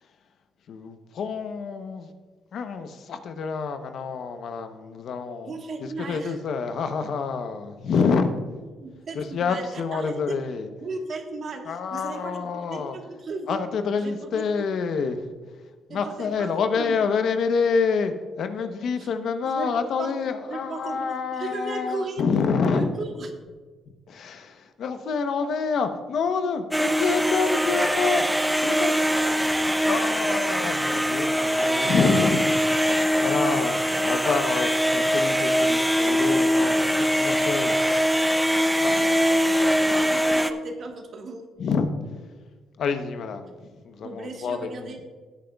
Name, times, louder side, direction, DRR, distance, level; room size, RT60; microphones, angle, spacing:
voice 1, 0.7-2.1 2.5-5.5 5.8-8.4 9.1-10.7 11.7-13.0 13.5-15.3 15.9-22.9 24.1-29.3 29.7-32.5 32.9-37.8 38.3-40.0 41.6-41.9 42.8-45.0, left 5 dB, 65° left, 8 dB, 0.9 m, -27 dB
voice 2, 5.4-6.4 8.8-10.4 10.8-13.6 13.9-14.4 15.9-17.0 19.0-19.1 19.4-19.7 20.0-20.1 20.5-22.2 22.6-23.3 40.0-41.5 44.0-45.0, right 3 dB, 55° right, 4 dB, 1.4 m, -36 dB
sound 1, 26.7-40.5, equal, 5° right, 0.5 m, -22 dB
16.5 x 8.9 x 2.3 m, 1.4 s
cardioid pair, 90°, 0 cm